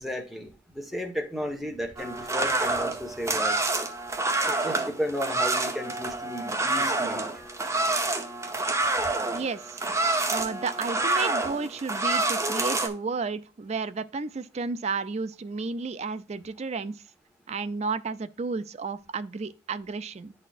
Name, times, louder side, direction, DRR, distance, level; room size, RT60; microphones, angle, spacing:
voice 1, 0.0-3.6 4.4-7.2, equal, ahead, 1.2 m, -33 dB
sound 1, 2.0-12.9, right 2 dB, 15° right, 0.8 m, -28 dB
voice 2, 9.3-9.8 10.3-17.0 17.5-20.3, right 4 dB, 40° right, 0.4 m, -32 dB
10.5 x 4.2 x 2.4 m
head